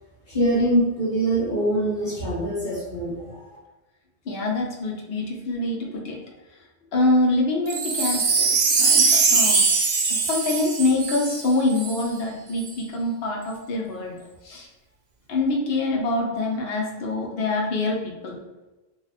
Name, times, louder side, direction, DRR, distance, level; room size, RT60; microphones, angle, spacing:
voice 1, 0.3-3.4, right 1 dB, 50° left, -9 dB, 1.8 m, -23 dB
voice 2, 4.3-6.2 6.9-9.6 10.1-14.2 14.4-14.7 15.3-18.4, left 2 dB, 70° left, -1 dB, 0.9 m, -25 dB
Wind chime, 7.7-12.0 12.6-12.7, right 4 dB, 85° right, 0.9 m, -21 dB
2.8 x 2.4 x 4.0 m, 1.1 s
omnidirectional pair, 1.1 m